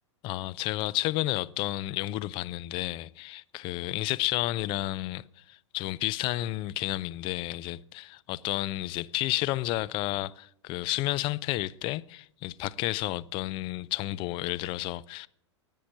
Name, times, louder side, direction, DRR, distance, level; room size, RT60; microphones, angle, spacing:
voice 1, 0.2-15.3, left 17 dB, 35° left, 0.4 m, -31 dB
10.0 x 9.2 x 8.6 m
figure-of-eight pair, 95°, 16 cm